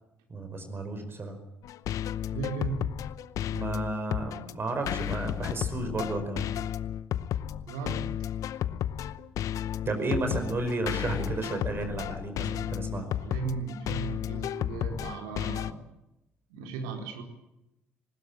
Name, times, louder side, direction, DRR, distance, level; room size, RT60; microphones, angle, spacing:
voice 1, 0.3-1.4 3.5-6.4 9.8-13.1, right 2 dB, 35° right, 6 dB, 5.1 m, -32 dB
sound 1, 1.6-15.7, left 10 dB, 60° left, 0.8 m, -33 dB
voice 2, 2.3-2.9 7.6-8.1 13.0-15.8 16.5-17.2, right 5 dB, 70° right, 3 dB, 4.2 m, -36 dB
20.5 x 19.5 x 8.7 m, 0.90 s
hypercardioid pair, 50°, 6 cm